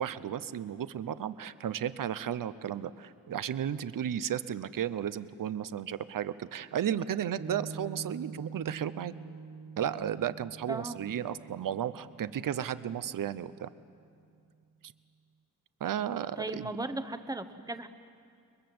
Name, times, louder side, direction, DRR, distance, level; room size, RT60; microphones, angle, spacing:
voice 1, 0.0-9.1 9.8-13.7 15.8-16.7, right 9 dB, 60° right, 15 dB, 0.8 m, -34 dB
Piano, 7.4-14.0, right 4 dB, 35° right, 1.1 m, -46 dB
voice 2, 10.7-11.0 16.4-17.9, right 2 dB, 10° right, 10 dB, 0.9 m, -36 dB
29.0 x 22.0 x 7.8 m, 2.4 s
wide cardioid pair, 165°, 37 cm